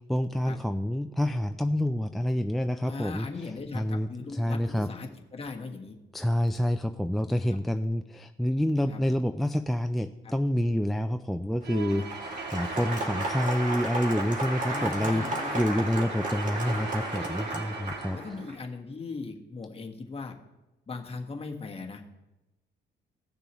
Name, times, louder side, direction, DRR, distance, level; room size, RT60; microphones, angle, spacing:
voice 1, 0.1-3.3 3.7-4.9 6.1-18.2, equal, ahead, 9 dB, 0.4 m, -28 dB
voice 2, 2.8-6.0 8.9-9.0 10.2-10.3 11.9-12.1 13.0-13.1 14.7-15.8 16.6-16.7 17.6-17.7 18.1-20.3 20.9-22.0, left 4 dB, 30° left, 1 dB, 1.4 m, -39 dB
Applause, 11.6-18.5, right 2 dB, 40° right, 2.4 m, -33 dB
Bowed string instrument, 11.6-18.3, right 7 dB, 60° right, 0.8 m, -44 dB
17.5 x 6.7 x 3.1 m, 1.0 s
cardioid pair, 90°, 20 cm